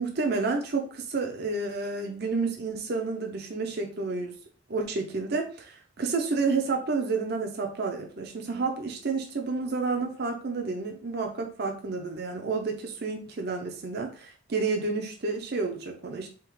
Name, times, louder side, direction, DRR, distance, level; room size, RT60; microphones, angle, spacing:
voice 1, 0.0-4.3 4.7-16.3, right 4 dB, 55° right, 0.6 m, -30 dB
3.6 x 2.9 x 4.7 m
head